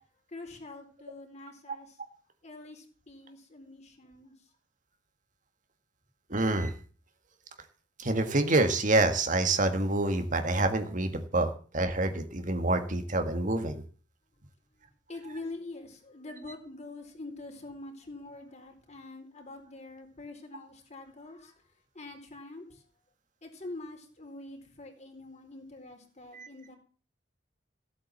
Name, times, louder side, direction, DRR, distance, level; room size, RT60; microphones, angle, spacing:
voice 1, 0.3-2.0 2.4-4.3 15.1-21.5 21.9-22.8 23.4-26.8, left 2 dB, 40° left, 3 dB, 4.1 m, -45 dB
voice 2, 6.3-6.7 8.0-13.8 26.3-26.5, right 2 dB, 45° right, 7 dB, 1.8 m, -27 dB
16.0 x 8.8 x 7.3 m, 0.40 s
head